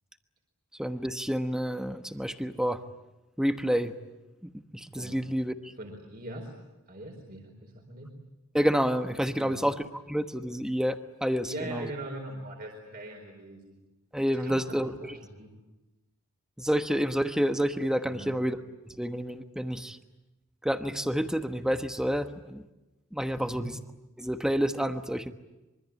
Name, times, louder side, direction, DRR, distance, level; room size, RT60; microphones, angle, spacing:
voice 1, 0.8-2.8 3.4-3.9 4.4-5.7 8.5-9.8 10.1-11.9 14.1-15.1 16.6-18.6 18.8-20.0 20.6-22.6 23.1-23.8 24.2-25.3, equal, 5° right, 8 dB, 1.1 m, -29 dB
voice 2, 5.0-5.4 5.8-6.5 6.9-8.1 9.3-9.6 11.4-13.8 14.3-15.5 18.1-18.4 19.8-19.9 23.3-23.7, right 1 dB, 45° right, 1 dB, 4.6 m, -41 dB
25.5 x 24.0 x 8.7 m, 1.0 s
head